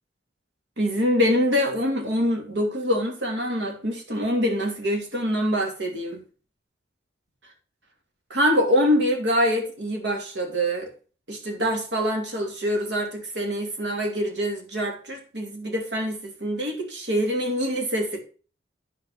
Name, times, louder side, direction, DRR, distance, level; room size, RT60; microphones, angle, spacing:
voice 1, 0.8-6.2 8.3-10.9 11.3-18.2, equal, 85° right, 2.9 m, -25 dB
11.0 x 4.8 x 5.5 m
head